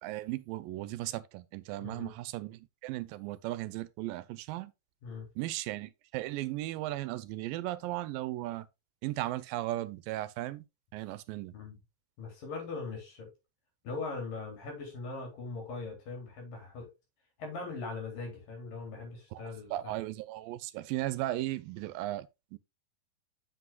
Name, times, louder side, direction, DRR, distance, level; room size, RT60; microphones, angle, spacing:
voice 1, 0.0-4.7 5.4-8.7 9.0-10.6 10.9-11.5 19.3-19.4 19.7-22.6, right 16 dB, 85° right, 2.2 m, -36 dB
voice 2, 12.2-13.3 13.8-16.9 17.4-19.8, left 3 dB, 70° left, 5.2 m, -40 dB
8.2 x 7.6 x 2.3 m
omnidirectional pair, 4.1 m